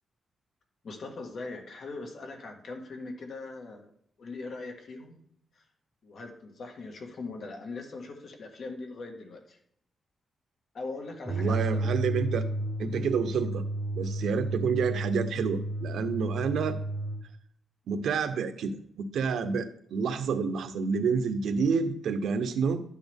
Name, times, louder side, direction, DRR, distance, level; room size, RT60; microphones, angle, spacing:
voice 1, 0.8-3.9 4.2-5.2 5.6-5.7 6.0-9.6 10.7-12.0, left 3 dB, 50° left, 2 dB, 1.8 m, -40 dB
sound 1, 11.2-17.2, right 1 dB, 15° right, 1.4 m, -32 dB
voice 2, 11.3-12.4 12.8-13.6 13.9-16.8 17.9-22.8, right 5 dB, 85° right, 9 dB, 0.9 m, -29 dB
11.5 x 8.6 x 3.6 m, 0.69 s
wide cardioid pair, 165°, 0 cm